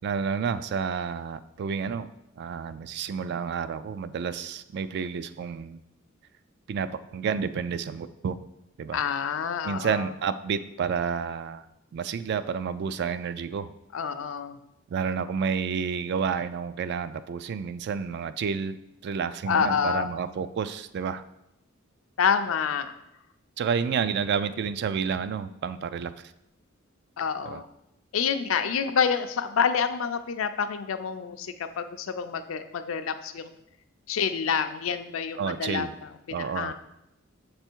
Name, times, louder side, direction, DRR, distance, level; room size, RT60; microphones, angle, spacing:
voice 1, 0.0-2.1 2.4-5.8 6.7-8.4 8.8-9.0 9.6-11.7 11.9-13.7 14.9-18.8 19.0-21.2 23.6-26.1 27.5-27.7 35.4-35.9 36.3-36.7, right 6 dB, 55° right, 14 dB, 0.3 m, -30 dB
voice 2, 8.9-10.1 13.9-14.6 19.5-20.1 22.2-22.9 27.2-27.6 28.1-33.5 34.1-36.7, left 6 dB, 70° left, 9 dB, 0.4 m, -28 dB
6.8 x 3.4 x 4.4 m, 0.86 s
head